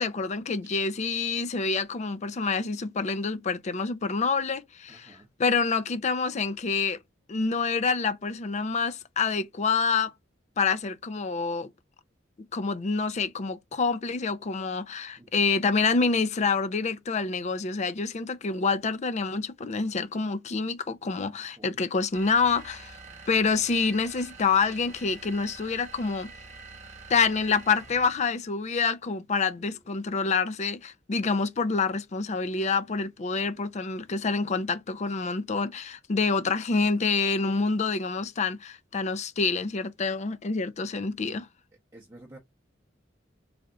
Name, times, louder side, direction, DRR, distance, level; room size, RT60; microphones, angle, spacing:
voice 1, 0.0-7.0 7.3-10.1 10.6-11.7 12.5-23.0 23.3-26.3 27.1-41.5, left 4 dB, 35° left, 0.4 m, -27 dB
voice 2, 4.9-5.3 15.2-15.5 21.6-21.8 29.6-29.8 36.8-37.1 41.9-42.4, right 1 dB, 20° right, 0.8 m, -52 dB
sound 1, 22.1-28.3, right 3 dB, 40° right, 1.2 m, -47 dB
3.4 x 2.5 x 3.8 m
head